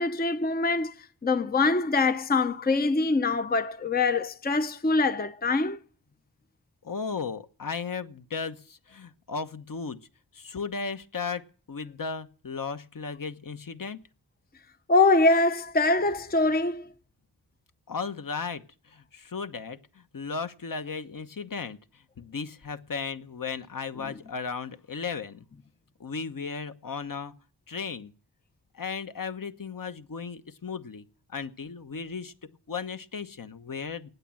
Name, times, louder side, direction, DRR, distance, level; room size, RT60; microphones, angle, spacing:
voice 1, 0.0-5.8 14.9-16.9 24.0-24.2, left 3 dB, 20° left, 0.6 m, -24 dB
voice 2, 6.8-10.0 10.3-14.0 17.9-18.6 19.1-19.8 20.1-21.8 22.2-25.4 26.0-27.3 27.7-28.1 28.7-31.0 31.3-32.3 32.7-34.1, left 5 dB, 50° left, 1.1 m, -35 dB
16.0 x 9.4 x 7.6 m
wide cardioid pair, 65°, 42 cm